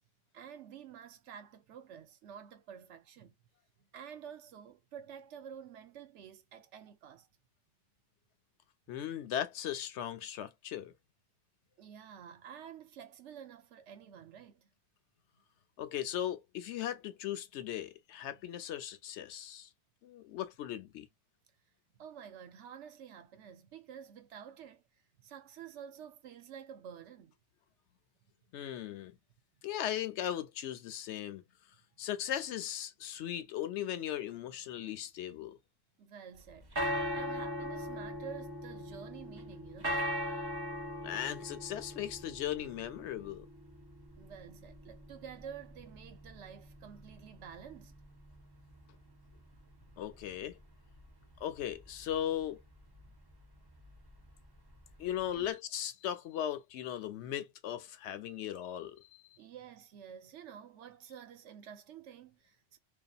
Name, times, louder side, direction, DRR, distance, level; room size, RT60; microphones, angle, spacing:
voice 1, 0.3-3.3 3.8-7.3 11.8-14.7 21.9-24.8 25.2-27.3 36.0-40.0 44.2-48.0 53.0-53.1 55.4-55.6 59.4-62.8, right 8 dB, 80° right, 0.9 m, -50 dB
voice 2, 8.9-10.9 15.8-19.7 20.0-21.1 28.5-29.2 29.6-31.4 32.0-35.6 41.0-43.5 50.0-50.6 51.4-52.6 55.0-59.4, left 11 dB, 75° left, 0.9 m, -38 dB
sound 1, 36.4-55.5, equal, 25° right, 0.7 m, -41 dB
2.7 x 2.3 x 2.3 m
omnidirectional pair, 1.2 m